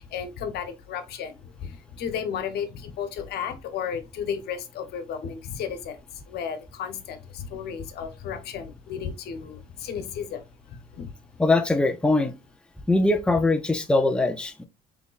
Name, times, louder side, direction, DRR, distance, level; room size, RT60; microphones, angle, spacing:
voice 1, 0.0-11.1, left 7 dB, 70° left, 1.2 m, -34 dB
voice 2, 11.4-12.4 12.9-14.7, left 2 dB, 5° left, 0.6 m, -22 dB
5.9 x 3.5 x 2.5 m
cardioid pair, 110°, 17 cm